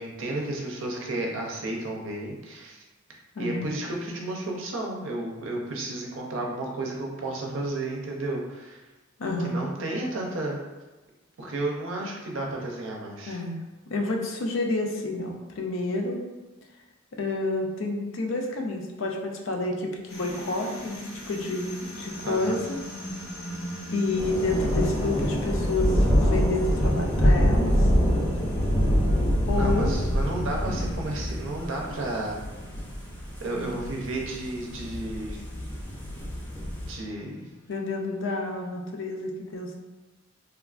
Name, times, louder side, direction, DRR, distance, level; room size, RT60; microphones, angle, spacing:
voice 1, 0.0-2.8 3.4-8.8 9.4-10.6 11.4-13.4 22.2-22.6 29.5-32.4 33.4-35.4 36.9-37.5, right 2 dB, 70° right, 0 dB, 0.6 m, -32 dB
voice 2, 3.4-3.7 9.2-9.7 13.3-13.6 13.9-16.2 17.1-21.0 21.3-22.8 23.9-27.9 29.5-29.9 33.5-33.8 37.7-39.8, left 2 dB, 65° left, 1 dB, 0.5 m, -29 dB
sound 1, 20.1-38.6, equal, 85° left, 0.9 m, -41 dB
sound 2, 24.2-36.9, equal, 10° left, 0.5 m, -25 dB
3.3 x 2.4 x 2.4 m, 1.2 s
head